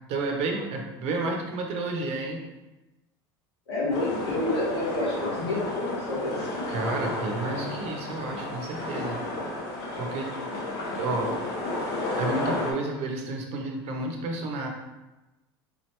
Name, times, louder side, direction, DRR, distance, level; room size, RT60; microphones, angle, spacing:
voice 1, 0.1-2.4 6.7-9.3 10.0-10.3 10.9-11.3 12.2-14.7, right 3 dB, 55° right, 2 dB, 0.8 m, -31 dB
voice 2, 3.7-6.5, left 2 dB, 90° left, -6 dB, 1.3 m, -29 dB
sound 1, 3.9-12.7, left 2 dB, 65° left, 0.9 m, -32 dB
3.8 x 2.9 x 3.2 m, 1.1 s
hypercardioid pair, 80°, 13 cm